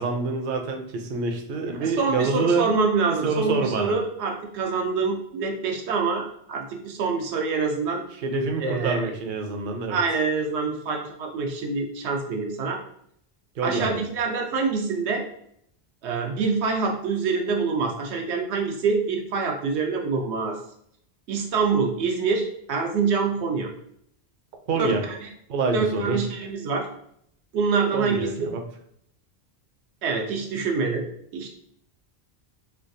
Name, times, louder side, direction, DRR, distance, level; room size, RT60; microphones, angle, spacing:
voice 1, 0.0-2.7 3.2-3.9 8.2-10.0 13.6-14.0 24.7-25.0 25.5-26.2 27.9-28.6, right 4 dB, 60° right, 3 dB, 0.6 m, -26 dB
voice 2, 1.8-8.0 8.6-9.1 9.9-12.8 13.6-15.2 16.0-20.6 21.3-23.7 24.8-25.3 25.7-26.9 27.5-28.3 30.0-31.1 31.3-31.5, right 4 dB, 85° right, 1 dB, 0.9 m, -26 dB
3.3 x 2.3 x 2.6 m, 0.69 s
omnidirectional pair, 1.1 m